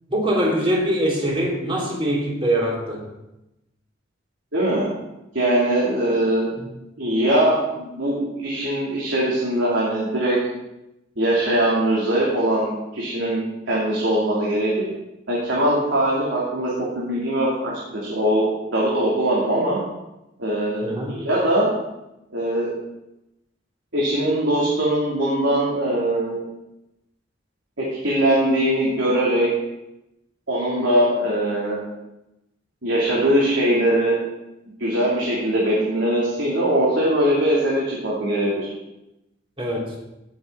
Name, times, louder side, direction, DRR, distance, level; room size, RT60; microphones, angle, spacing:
voice 1, 0.1-3.1 6.6-6.7 20.8-21.2 39.6-39.9, right 1 dB, 30° right, -3 dB, 3.3 m, -23 dB
voice 2, 4.5-4.9 5.3-6.5 7.0-10.4 11.2-14.9 15.3-19.8 20.4-21.7 22.3-22.7 23.9-26.4 27.8-29.5 30.5-31.8 32.8-34.1 34.8-38.6, right 1 dB, 80° right, -6 dB, 3.2 m, -21 dB
17.5 x 8.2 x 4.1 m, 0.93 s
head